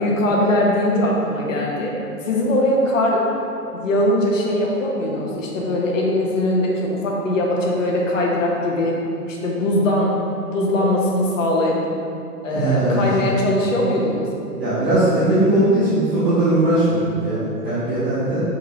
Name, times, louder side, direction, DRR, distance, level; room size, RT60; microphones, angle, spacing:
voice 1, 0.0-1.9 2.2-3.2 3.7-8.9 9.3-10.1 10.5-11.8 12.4-14.3, left 1 dB, 55° left, -2 dB, 1.4 m, -20 dB
voice 2, 12.5-13.1 14.6-18.4, right 1 dB, 20° right, -13 dB, 1.5 m, -19 dB
5.4 x 4.8 x 4.0 m, 2.6 s
figure-of-eight pair, 135°, 47 cm